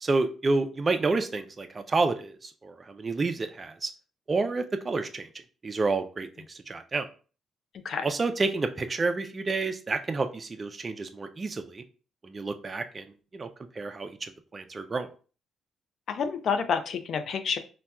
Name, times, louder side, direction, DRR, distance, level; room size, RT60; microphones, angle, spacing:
voice 1, 0.0-3.9 4.3-5.3 5.6-7.1 8.0-11.8 12.2-13.1 13.3-13.5 13.8-15.1, right 3 dB, 30° right, 7 dB, 0.3 m, -29 dB
voice 2, 16.1-17.6, left 6 dB, 60° left, 9 dB, 0.4 m, -28 dB
4.0 x 2.2 x 2.3 m, 0.37 s
cardioid pair, 90°, 0 cm